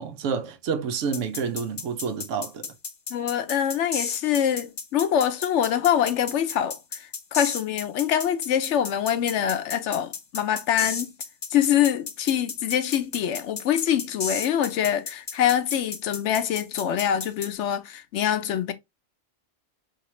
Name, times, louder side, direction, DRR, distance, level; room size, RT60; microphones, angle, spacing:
voice 1, 0.0-2.7, right 6 dB, 75° right, 1.1 m, -29 dB
sound 1, 1.1-17.5, left 5 dB, 45° left, 0.7 m, -33 dB
voice 2, 3.1-11.1 11.5-18.7, left 9 dB, 70° left, 0.9 m, -24 dB
4.8 x 3.3 x 3.0 m
omnidirectional pair, 1.3 m